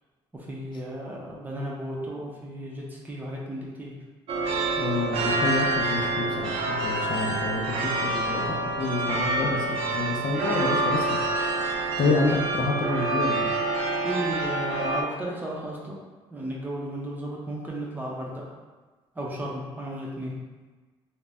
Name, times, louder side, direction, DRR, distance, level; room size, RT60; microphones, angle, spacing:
voice 1, 0.3-3.9 12.0-12.2 14.0-16.0 16.3-18.5 19.2-20.3, right 1 dB, 20° right, -3 dB, 0.6 m, -34 dB
sound 1, 4.3-15.0, right 2 dB, 70° right, 0.5 m, -27 dB
voice 2, 4.8-11.2 12.0-13.5, left 3 dB, 55° left, -1 dB, 0.5 m, -28 dB
2.6 x 2.1 x 3.3 m, 1.3 s
cardioid pair, 115°, 10 cm